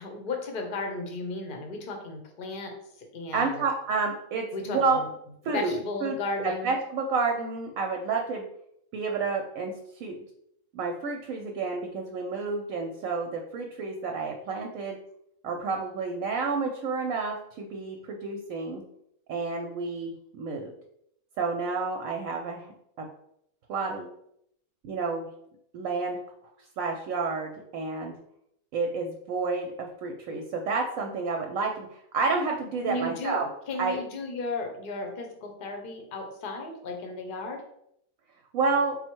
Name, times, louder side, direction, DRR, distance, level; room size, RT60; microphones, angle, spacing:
voice 1, 0.0-2.7 3.1-3.6 4.5-5.0 5.5-6.7 32.8-33.4 33.7-37.6, left 2 dB, 45° left, 3 dB, 0.8 m, -34 dB
voice 2, 3.3-5.0 5.4-8.4 8.9-10.2 10.7-15.0 15.4-18.8 19.3-20.7 21.4-22.7 23.0-23.1 23.7-24.1 24.8-25.3 25.7-26.2 26.8-28.1 28.7-33.5 33.8-34.0 38.5-39.0, right 4 dB, 70° right, 2 dB, 0.9 m, -30 dB
4.2 x 2.1 x 4.4 m, 0.74 s
omnidirectional pair, 1.5 m